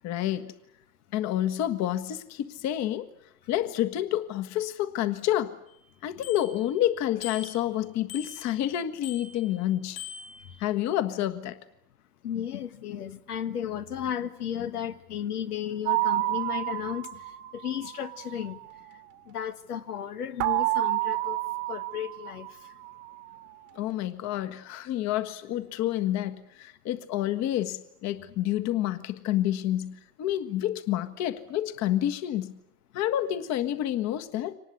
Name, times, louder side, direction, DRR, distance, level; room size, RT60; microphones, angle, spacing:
voice 1, 0.0-0.5 1.1-3.1 3.5-5.5 6.0-10.0 10.6-11.6 23.7-32.5 32.9-34.5, left 12 dB, 35° left, 1.6 m, -29 dB
Bicycle bell, 5.7-5.8 6.2-6.8 7.2-7.7 8.1-8.7 9.0-9.6 10.0-10.7, left 7 dB, 65° left, 4.9 m, -43 dB
voice 2, 12.2-17.2 17.5-18.6 19.3-21.4 21.7-22.5, left 9 dB, 90° left, 1.5 m, -34 dB
sound 1, 15.9-18.7 20.4-23.2, right 18 dB, 55° right, 1.5 m, -30 dB
24.0 x 19.5 x 9.7 m
hypercardioid pair, 120°, 44 cm